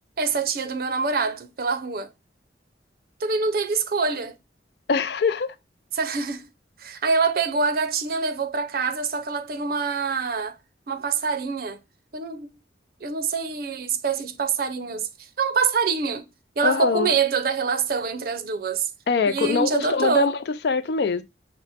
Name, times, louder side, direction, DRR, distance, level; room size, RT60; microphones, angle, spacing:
voice 1, 0.2-2.1 3.2-4.4 5.9-6.4 6.8-10.6 10.9-11.8 12.1-12.5 13.0-15.1 15.4-16.2 16.6-18.9 19.3-20.3, right 5 dB, 55° right, 0.5 m, -25 dB
voice 2, 4.9-5.5 16.6-17.1 19.1-20.4 20.6-21.2, left 4 dB, 65° left, 0.4 m, -23 dB
6.2 x 2.1 x 4.0 m
head